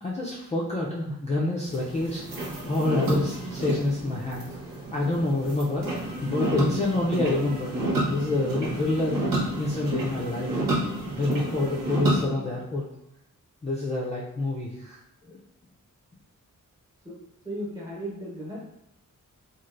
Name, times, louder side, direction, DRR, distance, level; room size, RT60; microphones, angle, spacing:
voice 1, 0.0-4.5 4.9-5.9 6.2-9.2 9.6-10.6 11.1-12.8 13.6-15.4, left 2 dB, 20° left, -5 dB, 0.4 m, -27 dB
sound 1, 1.7-12.3, right 2 dB, 90° right, 0.9 m, -30 dB
voice 2, 17.4-18.6, equal, 10° right, -5 dB, 1.1 m, -35 dB
3.2 x 2.5 x 2.5 m, 0.85 s
wide cardioid pair, 110°, 33 cm